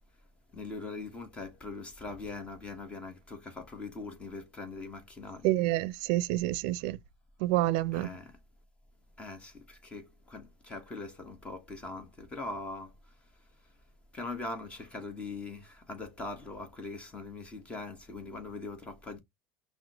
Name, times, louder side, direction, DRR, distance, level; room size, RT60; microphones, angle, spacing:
voice 1, 0.5-5.5 7.9-8.4 9.2-12.9 14.1-19.2, left 3 dB, 20° left, 1.1 m, -41 dB
voice 2, 5.4-7.0 7.4-8.1, right 16 dB, 75° right, 0.4 m, -28 dB
5.9 x 2.1 x 2.9 m
cardioid pair, 140°, 6 cm